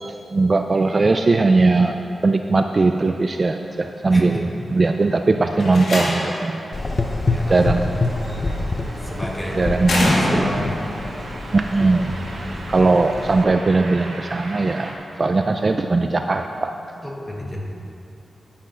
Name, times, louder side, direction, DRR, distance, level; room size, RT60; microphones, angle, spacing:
voice 1, 0.0-6.6 7.5-8.0 9.6-10.5 11.5-12.2 12.7-16.8, right 3 dB, 30° right, 6 dB, 0.3 m, -19 dB
sound 1, 2.4-14.9, right 2 dB, 85° right, 2.0 m, -40 dB
voice 2, 4.1-4.4 7.3-7.6 9.0-10.7 11.8-12.2 12.5-12.7 17.0-17.6, equal, 10° left, -2 dB, 1.5 m, -31 dB
Slam, 5.5-6.5 8.0-8.5 9.8-10.8, left 1 dB, 70° left, 2.3 m, -23 dB
Gurgling / Engine, 6.7-13.4, left 2 dB, 30° left, 0.6 m, -27 dB
10.0 x 9.8 x 5.6 m, 2.7 s
wide cardioid pair, 170°, 0 cm